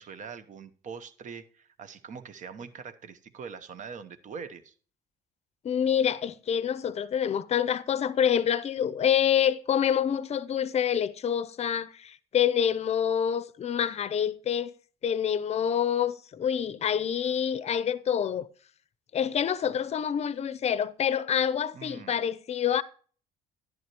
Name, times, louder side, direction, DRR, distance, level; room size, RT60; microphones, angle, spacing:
voice 1, 0.0-4.7 21.7-22.2, right 6 dB, 45° right, 0.9 m, -43 dB
voice 2, 5.6-14.7 15.0-18.5 19.1-22.8, left 8 dB, 40° left, 0.6 m, -27 dB
11.0 x 10.5 x 3.0 m
cardioid pair, 110°, 17 cm